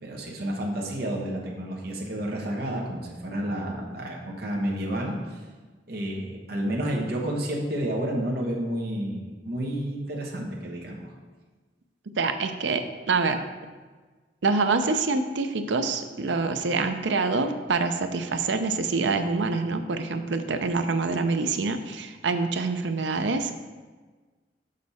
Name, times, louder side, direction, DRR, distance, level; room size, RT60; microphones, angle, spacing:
voice 1, 0.0-5.4 5.9-11.1, right 1 dB, 60° right, -1 dB, 1.2 m, -30 dB
voice 2, 12.2-13.4 14.4-23.5, right 4 dB, 90° right, 8 dB, 0.6 m, -26 dB
6.6 x 5.2 x 4.2 m, 1.3 s
head